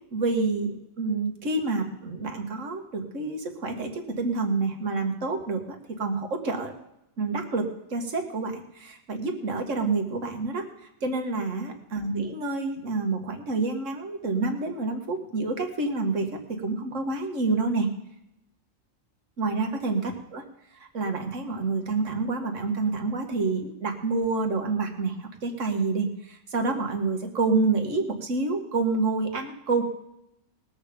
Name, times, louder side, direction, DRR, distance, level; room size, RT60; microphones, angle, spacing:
voice 1, 0.1-6.7 7.2-17.9 19.4-20.4 20.7-29.8, right 3 dB, 65° right, 4 dB, 2.0 m, -28 dB
20.0 x 6.9 x 5.2 m, 0.84 s
omnidirectional pair, 1.4 m